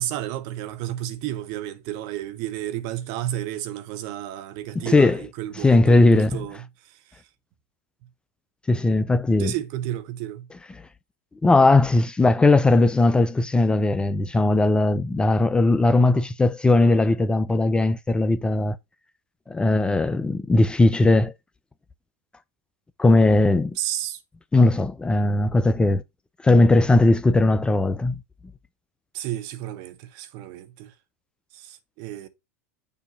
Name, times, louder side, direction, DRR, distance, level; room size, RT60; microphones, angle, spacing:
voice 1, 0.0-7.3 9.4-10.5 23.7-24.2 29.1-30.9 31.5-32.3, right 13 dB, 55° right, 1.0 m, -32 dB
voice 2, 4.8-5.2 5.6-6.4 8.7-9.5 11.4-18.8 19.5-21.3 23.0-23.8 24.5-26.0 26.4-28.1, left 2 dB, 10° left, 0.4 m, -18 dB
6.9 x 2.8 x 5.1 m
hypercardioid pair, 100°, 8 cm